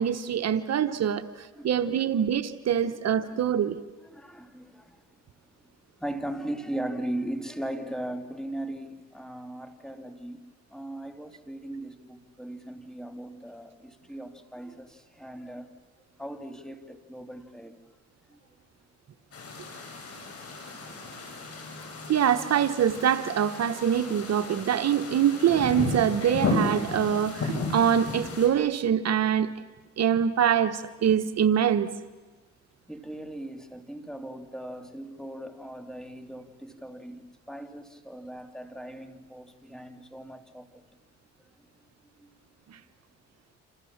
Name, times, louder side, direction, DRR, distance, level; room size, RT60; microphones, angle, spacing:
voice 1, 0.0-3.8 22.1-29.5 30.0-31.9 42.7-42.8, right 9 dB, 55° right, 1.2 m, -24 dB
voice 2, 1.5-2.0 3.2-3.4 4.0-5.1 6.0-10.4 10.7-15.7 16.2-17.8 18.3-18.4 31.0-31.3 32.9-40.8 42.2-42.3, right 1 dB, ahead, 2.6 m, -38 dB
sound 1, 19.3-28.5, left 2 dB, 50° left, 7.5 m, -34 dB
29.0 x 27.5 x 7.3 m
cardioid pair, 90°, 30 cm